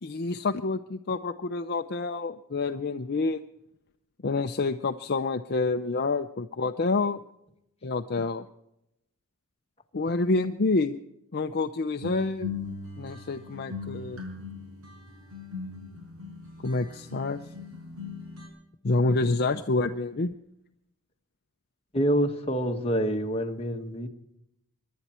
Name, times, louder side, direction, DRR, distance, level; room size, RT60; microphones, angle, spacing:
voice 1, 0.0-3.4 4.2-7.2 7.8-8.5 9.9-11.0 11.3-12.5 13.0-14.2 16.6-17.4 18.8-20.4, left 3 dB, 45° left, 7 dB, 0.6 m, -28 dB
sound 1, 12.0-18.5, left 4 dB, 70° right, 5.5 m, -40 dB
voice 2, 21.9-24.1, equal, 25° left, 3 dB, 1.4 m, -27 dB
23.5 x 11.0 x 4.4 m, 0.81 s
head